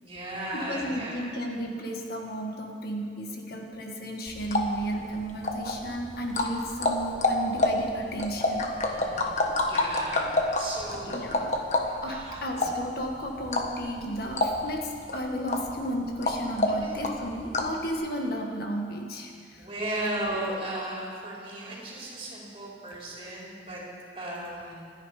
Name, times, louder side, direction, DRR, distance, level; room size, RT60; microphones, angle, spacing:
voice 1, 0.0-1.3 8.9-11.3 11.8-12.4 16.7-17.0 19.6-23.8 24.2-24.9, right 1 dB, 30° right, -5 dB, 4.3 m, -36 dB
voice 2, 0.5-8.7 10.8-19.7, equal, 60° left, 1 dB, 1.7 m, -34 dB
sound 1, 4.3-17.8, left 2 dB, 40° left, 1.4 m, -29 dB
27.0 x 10.0 x 5.1 m, 2.2 s
head